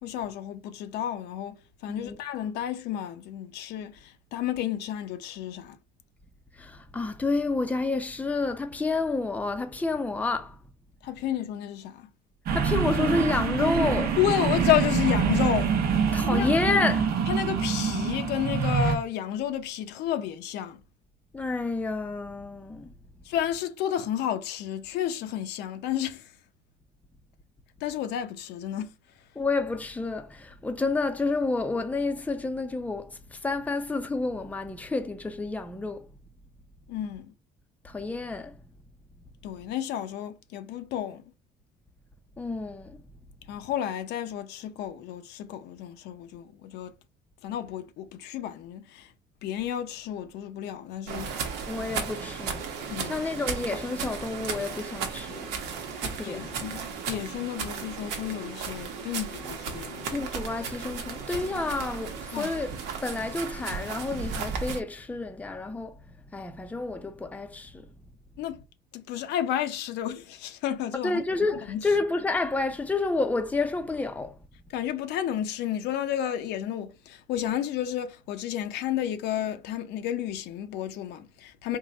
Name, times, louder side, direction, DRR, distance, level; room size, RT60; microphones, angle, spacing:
voice 1, 0.0-5.8 11.0-12.1 14.2-15.8 16.2-16.5 17.3-20.8 23.2-26.3 27.8-28.9 36.9-37.3 39.4-41.3 43.5-46.9 47.4-49.1 49.4-51.3 52.9-53.2 56.2-60.2 62.3-62.5 68.4-68.6 68.9-71.2 71.7-71.8 74.7-81.8, left 11 dB, 80° left, 0.6 m, -31 dB
voice 2, 6.5-10.6 12.5-14.2 16.1-17.1 21.3-22.9 29.4-36.1 37.8-38.6 42.4-43.0 51.7-55.5 55.9-56.6 60.1-62.7 63.0-67.9 71.0-74.4 81.7-81.8, left 3 dB, 10° left, 0.5 m, -29 dB
sound 1, 12.5-19.0, right 6 dB, 65° right, 0.8 m, -25 dB
sound 2, 51.1-64.8, right 5 dB, 85° right, 0.9 m, -35 dB
3.6 x 2.2 x 3.8 m
cardioid pair, 110°, 17 cm